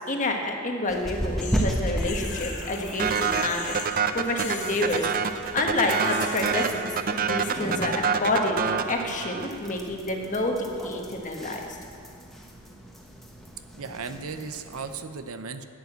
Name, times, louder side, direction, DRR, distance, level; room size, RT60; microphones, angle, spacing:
voice 1, 0.0-3.7 4.1-5.1 5.5-8.6 8.8-11.6, left 2 dB, 35° left, 2 dB, 1.3 m, -28 dB
sound 1, 0.9-15.0, equal, ahead, 1.2 m, -36 dB
sound 2, 1.4-4.0 4.2-6.8, left 5 dB, 55° left, 2.0 m, -40 dB
sound 3, 3.0-9.7, right 6 dB, 40° right, 0.5 m, -27 dB
voice 2, 13.7-15.6, right 5 dB, 75° right, 9 dB, 0.7 m, -36 dB
11.0 x 8.2 x 7.9 m, 2.4 s
head